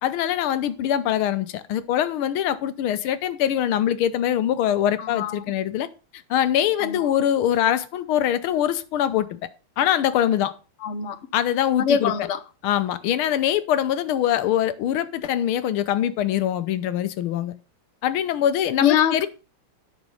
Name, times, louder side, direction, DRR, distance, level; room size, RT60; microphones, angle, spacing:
voice 1, 0.0-5.9 6.3-9.3 9.8-10.5 11.3-12.3 12.6-17.5 18.0-19.3, left 10 dB, 75° left, 1.6 m, -23 dB
voice 2, 5.0-5.4 6.8-7.0 10.8-11.2 11.8-12.4 18.8-19.3, left 8 dB, 55° left, 0.8 m, -23 dB
9.5 x 6.3 x 5.6 m
omnidirectional pair, 2.4 m